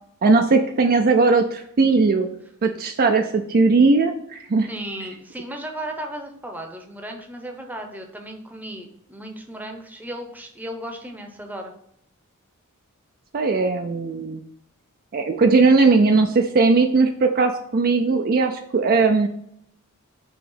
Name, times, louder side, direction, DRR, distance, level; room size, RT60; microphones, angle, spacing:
voice 1, 0.2-2.3 2.6-4.7 13.3-14.4 15.1-19.3, right 3 dB, 45° right, 5 dB, 0.4 m, -18 dB
voice 2, 4.7-11.7, right 1 dB, 10° right, 3 dB, 0.8 m, -35 dB
5.7 x 3.1 x 5.5 m, 0.71 s
head